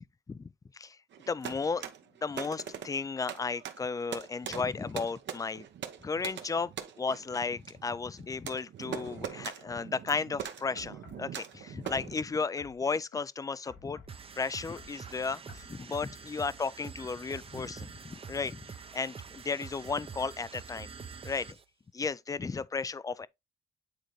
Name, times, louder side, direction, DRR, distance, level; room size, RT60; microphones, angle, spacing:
sound 1, 1.1-12.2, right 9 dB, 65° right, 1.0 m, -42 dB
voice 1, 1.3-1.9 2.2-5.6 6.0-6.7 7.0-14.0 14.4-18.6 18.9-20.9 21.2-21.5 21.9-23.3, left 4 dB, 15° left, 0.3 m, -34 dB
sound 2, 10.8-11.3 11.9-13.2 13.7-14.2 14.6-15.0 15.5-15.7 16.3-16.4, left 4 dB, 80° left, 2.9 m, -52 dB
sound 3, 14.1-21.6, right 6 dB, 30° right, 0.6 m, -46 dB
9.0 x 3.9 x 3.0 m
cardioid pair, 90°, 20 cm